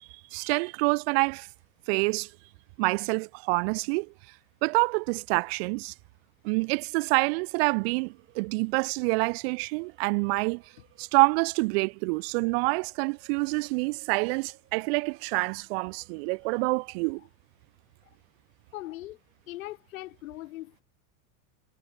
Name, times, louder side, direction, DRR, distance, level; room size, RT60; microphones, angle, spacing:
voice 1, 0.3-1.5 1.9-2.3 2.8-4.1 4.6-5.9 6.4-10.6 11.0-17.2, right 30 dB, 50° right, 0.6 m, -27 dB
sound 1, 7.1-8.9 9.2-16.9, right 12 dB, 30° right, 5.3 m, -64 dB
voice 2, 18.7-19.2 19.5-20.8, left 17 dB, 80° left, 4.7 m, -40 dB
supercardioid pair, 160°, 40 cm